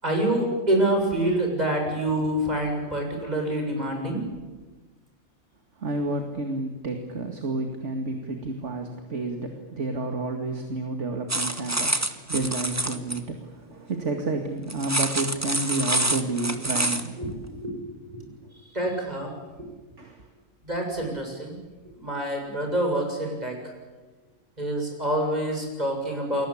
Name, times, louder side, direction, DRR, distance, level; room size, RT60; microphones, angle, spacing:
voice 1, 0.0-4.2 17.2-17.8 18.1-18.3 18.7-19.3 19.6-19.7 20.6-21.6 21.9-23.6 24.6-26.5, right 1 dB, 25° right, 2 dB, 7.1 m, -26 dB
voice 2, 5.8-17.2 18.5-19.0 20.0-20.2, right 2 dB, 50° right, 4 dB, 2.5 m, -30 dB
sound 1, 11.3-13.2 14.7-17.1, right 1 dB, 10° right, 1.3 m, -26 dB
29.0 x 22.5 x 8.7 m, 1.3 s
omnidirectional pair, 1.5 m